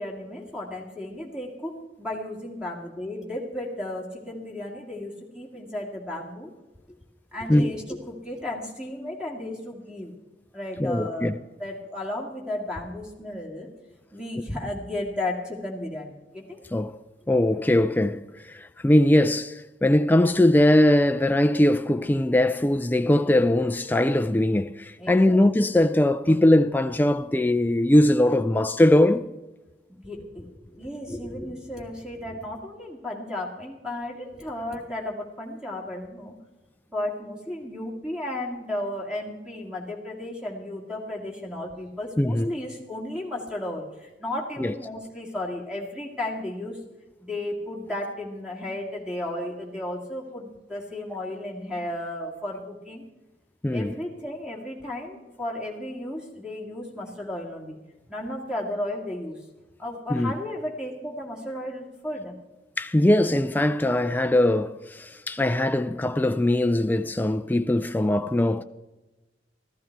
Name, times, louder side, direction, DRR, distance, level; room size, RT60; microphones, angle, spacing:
voice 1, 0.0-6.5 6.9-7.0 7.3-10.1 10.5-13.7 14.1-16.6 25.0-25.4 30.0-36.3 36.9-46.8 47.2-53.0 53.7-57.8 58.1-59.4 59.8-62.4, left 1 dB, 5° right, 2.2 m, -34 dB
voice 2, 10.8-11.3 16.7-17.0 17.3-29.2 42.2-42.5 44.6-44.7 53.6-53.9 60.1-60.3 62.8-68.6, left 1 dB, 10° left, 0.4 m, -21 dB
14.5 x 14.0 x 4.6 m
head